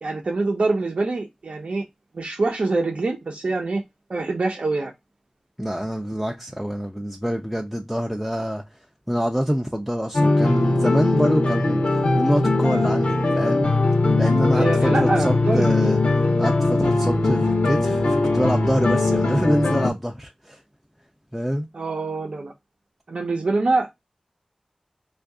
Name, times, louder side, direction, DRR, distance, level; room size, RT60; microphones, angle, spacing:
voice 1, 0.0-1.8 2.1-3.8 4.1-4.9 14.5-16.0 21.7-22.5 23.1-23.9, right 3 dB, 70° right, 0.7 m, -25 dB
voice 2, 5.6-8.6 9.1-13.7 14.2-16.0 16.4-20.6 21.3-21.7, equal, 5° right, 0.4 m, -25 dB
sound 1, 10.1-19.9, left 2 dB, 75° left, 0.6 m, -20 dB
2.7 x 2.4 x 3.5 m
wide cardioid pair, 65°, 2 cm